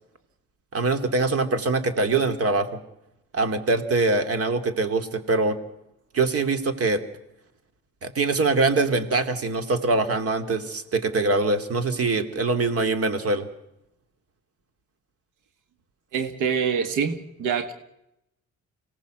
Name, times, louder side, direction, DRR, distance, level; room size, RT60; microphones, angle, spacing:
voice 1, 0.7-2.8 3.3-5.6 6.1-7.0 8.0-13.5, right 3 dB, 50° right, 10 dB, 2.7 m, -23 dB
voice 2, 16.1-17.7, right 6 dB, 90° right, 10 dB, 1.7 m, -25 dB
25.5 x 18.0 x 7.8 m, 0.82 s
cardioid pair, 90°, 30 cm